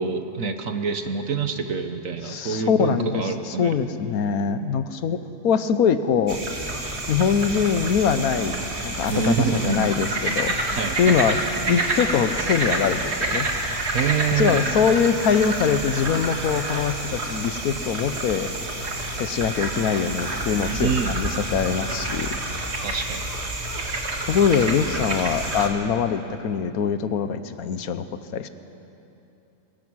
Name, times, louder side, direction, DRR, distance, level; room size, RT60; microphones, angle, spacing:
voice 1, 0.0-3.8 9.1-10.0 10.7-11.4 13.9-14.9 20.8-21.2 22.8-23.3, right 5 dB, 70° right, 7 dB, 1.4 m, -26 dB
voice 2, 2.2-6.4 7.1-11.4 11.7-13.5 14.3-18.6 19.1-22.4 24.2-28.1 28.3-28.5, left 7 dB, 85° left, 11 dB, 1.3 m, -23 dB
sound 1, 6.3-25.7, right 2 dB, 50° right, 2.2 m, -28 dB
sound 2, 8.6-13.6, equal, 15° left, 3.4 m, -42 dB
22.5 x 21.0 x 6.3 m, 2.9 s
omnidirectional pair, 1.5 m